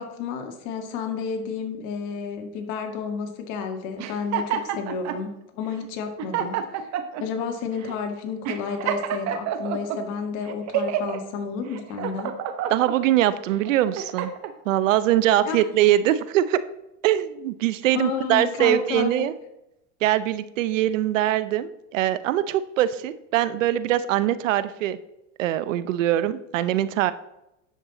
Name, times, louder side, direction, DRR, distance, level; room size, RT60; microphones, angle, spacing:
voice 1, 0.0-6.6 7.2-12.3 15.5-15.6 17.9-19.3, left 5 dB, 55° left, 5 dB, 1.9 m, -31 dB
sound 1, 4.0-5.2 5.8-5.9 6.2-7.2 7.8-8.0 8.4-10.0 10.5-11.2 11.7-13.0 13.5-14.5, right 9 dB, 45° right, 1.1 m, -28 dB
voice 2, 12.7-14.3 14.7-16.6 17.0-19.3 20.0-25.0 25.4-27.1, right 12 dB, 90° right, 15 dB, 0.7 m, -22 dB
10.0 x 7.4 x 4.0 m, 0.86 s
supercardioid pair, 115°, 37 cm